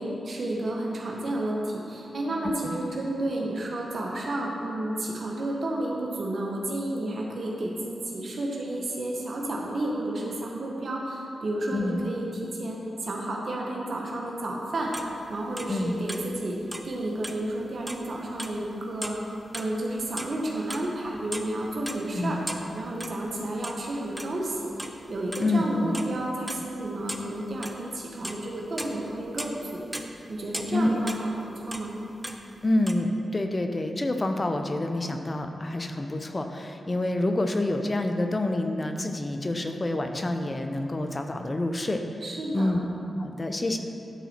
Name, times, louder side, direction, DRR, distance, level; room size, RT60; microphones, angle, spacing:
voice 1, 0.0-16.6 16.8-22.4 22.7-29.9 30.3-32.0 42.2-42.7, right 1 dB, 65° right, -2 dB, 1.1 m, -31 dB
sound 1, 14.9-16.4 16.6-17.0 17.2-18.1 18.4-18.7 19.0-20.4 20.6-23.4 23.6-23.8 24.1-25.5 25.9-26.2 26.5-27.9 28.2-28.4 28.7-29.6 29.9-31.9 32.2-32.9, right 1 dB, 10° right, 0.7 m, -37 dB
voice 2, 25.4-26.0 30.7-30.9 32.6-42.0 42.5-42.9 43.2-43.8, left 2 dB, 35° left, 6 dB, 0.8 m, -27 dB
12.5 x 4.1 x 4.4 m, 2.7 s
supercardioid pair, 40°, 0 cm